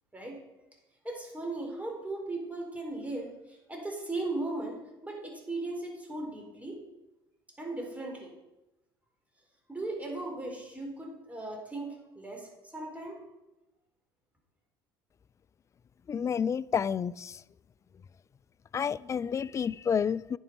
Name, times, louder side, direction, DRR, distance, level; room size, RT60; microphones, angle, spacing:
voice 1, 1.0-6.8 7.6-8.3 9.7-13.2, right 2 dB, 10° right, 4.4 m, -37 dB
voice 2, 16.1-17.4 18.7-20.4, left 7 dB, 25° left, 0.3 m, -30 dB
9.9 x 9.9 x 4.7 m
figure-of-eight pair, 60°, 13 cm